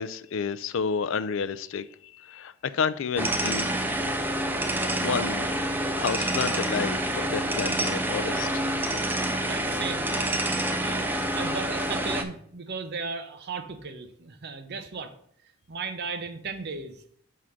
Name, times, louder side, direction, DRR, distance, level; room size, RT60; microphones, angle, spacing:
voice 1, 0.0-3.7 4.8-5.5 5.9-8.6, left 6 dB, 55° left, 0.4 m, -30 dB
sound 1, 3.2-12.2, right 1 dB, 10° right, 0.4 m, -27 dB
voice 2, 9.4-10.1 10.5-15.1 15.7-17.0, right 4 dB, 45° right, 0.6 m, -36 dB
6.3 x 3.7 x 5.7 m
head